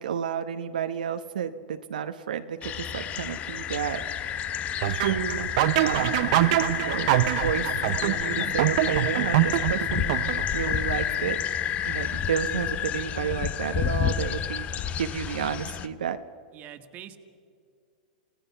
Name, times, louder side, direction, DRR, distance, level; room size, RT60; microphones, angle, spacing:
voice 1, 0.0-4.5 4.9-5.5 5.8-6.3 6.8-7.1 7.4-7.7 8.0-11.4 11.8-14.7 15.0-16.2, right 8 dB, 85° right, 7 dB, 1.0 m, -31 dB
sound 1, 2.6-15.9, left 9 dB, 30° left, 0.9 m, -30 dB
sound 2, 4.8-10.7, right 17 dB, 55° right, 0.5 m, -25 dB
voice 2, 16.5-17.2, right 11 dB, 35° right, 8 dB, 1.7 m, -44 dB
29.5 x 17.5 x 5.7 m, 2.1 s
hypercardioid pair, 120°, 4 cm